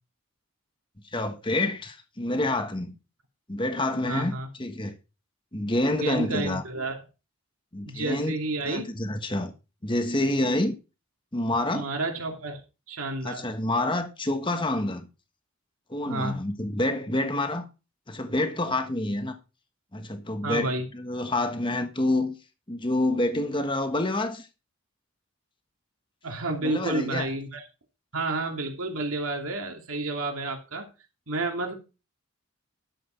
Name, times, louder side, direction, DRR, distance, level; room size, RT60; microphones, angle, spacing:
voice 1, 1.1-2.9 3.5-5.0 5.5-6.6 7.7-8.3 8.7-9.5 9.8-10.7 11.3-11.9 13.2-15.1 15.9-17.7 18.1-19.4 19.9-22.4 22.7-24.5 26.6-27.3, left 1 dB, 20° left, 1.3 m, -27 dB
voice 2, 4.1-4.5 6.0-7.0 7.8-8.9 11.7-12.6 12.9-13.5 16.1-16.4 20.4-20.9 26.2-27.6 28.1-30.9 31.3-31.7, right 2 dB, 80° right, 2.4 m, -30 dB
12.0 x 7.7 x 4.4 m
head